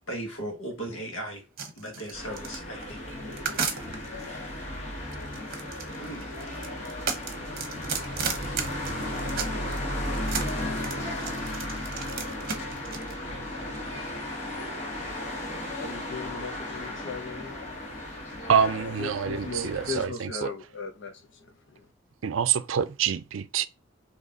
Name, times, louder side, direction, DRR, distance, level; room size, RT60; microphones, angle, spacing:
voice 1, 0.1-1.4 1.8-3.1 6.0-6.3, right 1 dB, 90° left, 1.6 m, -37 dB
sound 1, 1.6-4.3 5.1-9.8 10.1-13.1, right 6 dB, 50° right, 0.9 m, -33 dB
sound 2, 2.1-20.0, left 1 dB, 35° left, 1.5 m, -35 dB
voice 2, 15.8-17.6 19.0-21.8, left 3 dB, 65° left, 0.8 m, -38 dB
voice 3, 18.5-20.5 22.2-23.7, right 7 dB, 80° right, 0.4 m, -26 dB
4.1 x 3.0 x 3.7 m
head